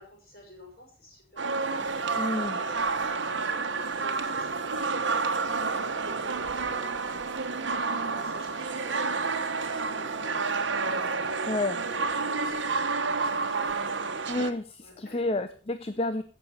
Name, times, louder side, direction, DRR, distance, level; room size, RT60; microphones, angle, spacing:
voice 1, 0.0-7.5 8.0-11.4 11.8-13.5 14.8-15.2, left 1 dB, 50° left, 0 dB, 6.3 m, -50 dB
sound 1, 1.4-14.5, right 4 dB, 90° right, 1.2 m, -29 dB
voice 2, 2.2-2.6 11.5-11.8 14.3-16.2, left 2 dB, 30° left, 10 dB, 0.6 m, -30 dB
15.5 x 6.9 x 5.6 m, 0.40 s
head